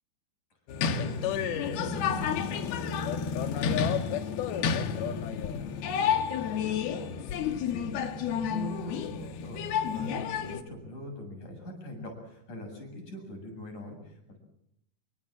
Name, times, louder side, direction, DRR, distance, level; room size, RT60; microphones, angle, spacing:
sound 1, 0.7-10.6, left 7 dB, 85° left, 3.5 m, -30 dB
voice 1, 1.0-4.2 4.5-6.1 6.7-14.4, equal, 50° left, 3 dB, 8.8 m, -44 dB
27.5 x 24.5 x 7.5 m, 0.75 s
omnidirectional pair, 4.3 m